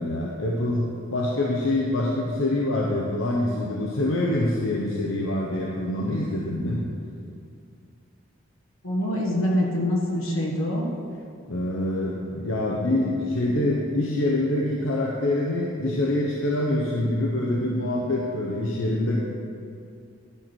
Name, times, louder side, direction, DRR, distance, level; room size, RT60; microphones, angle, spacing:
voice 1, 0.0-6.8 11.5-19.2, left 1 dB, 70° left, -3 dB, 0.9 m, -25 dB
voice 2, 8.8-10.9, left 1 dB, 85° left, -1 dB, 1.6 m, -25 dB
11.0 x 5.9 x 4.5 m, 2.4 s
head